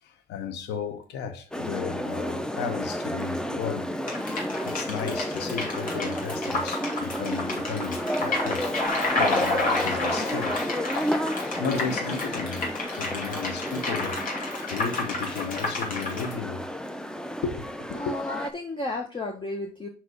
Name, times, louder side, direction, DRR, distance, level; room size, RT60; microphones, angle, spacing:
voice 1, 0.0-3.9 4.2-4.3 4.6-8.8 9.1-10.6 11.5-16.7 17.4-18.2, left 6 dB, 85° left, 0.9 m, -34 dB
sound 1, 1.5-18.5, equal, 5° left, 0.6 m, -32 dB
sound 2, 4.1-16.3, left 2 dB, 55° left, 2.7 m, -30 dB
voice 2, 18.0-19.9, left 2 dB, 30° left, 1.2 m, -32 dB
6.0 x 4.2 x 4.8 m
cardioid pair, 95°, 17 cm